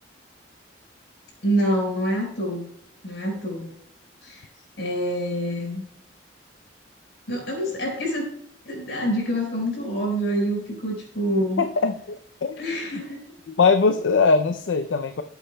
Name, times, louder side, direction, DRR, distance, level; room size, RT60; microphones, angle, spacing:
voice 1, 1.4-2.6 3.0-3.7 4.2-4.5 4.8-5.8 7.3-8.3 8.7-11.6 12.6-13.2, equal, 65° left, 0 dB, 4.7 m, -26 dB
voice 2, 11.6-12.6 13.5-15.2, left 4 dB, 85° left, 8 dB, 0.5 m, -21 dB
18.0 x 8.1 x 2.2 m, 0.68 s
head